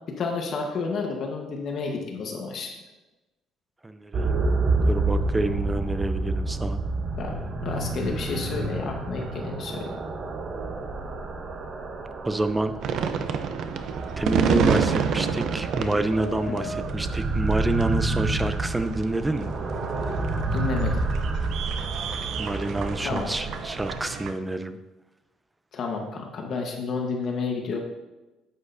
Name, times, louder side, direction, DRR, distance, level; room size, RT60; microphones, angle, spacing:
voice 1, 0.2-2.7 7.2-9.9 16.5-16.7 20.5-21.0 23.0-23.3 25.7-27.8, left 4 dB, 50° left, 2 dB, 1.3 m, -31 dB
voice 2, 3.8-4.4 4.9-6.8 12.2-12.7 14.2-19.5 22.4-24.8, right 2 dB, 10° right, 10 dB, 0.6 m, -27 dB
sound 1, 4.1-24.0, right 3 dB, 40° right, 1.1 m, -29 dB
sound 2, 12.8-24.3, right 6 dB, 60° right, 0.7 m, -29 dB
9.6 x 8.8 x 2.7 m, 1.1 s
cardioid pair, 120°, 0 cm